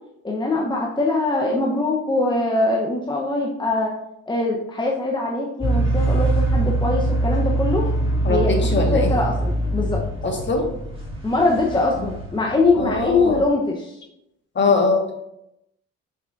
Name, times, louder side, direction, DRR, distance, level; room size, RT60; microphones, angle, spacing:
voice 1, 0.2-4.0 4.3-7.9 8.3-10.0 11.2-14.0, left 2 dB, 15° left, -1 dB, 0.9 m, -22 dB
sound 1, 5.6-13.4, right 2 dB, 20° right, 2.4 m, -23 dB
voice 2, 8.2-9.1 10.2-10.7 12.8-13.4 14.5-15.1, left 3 dB, 40° left, 2 dB, 1.6 m, -21 dB
6.7 x 5.9 x 2.6 m, 0.82 s
cardioid pair, 90°, 30 cm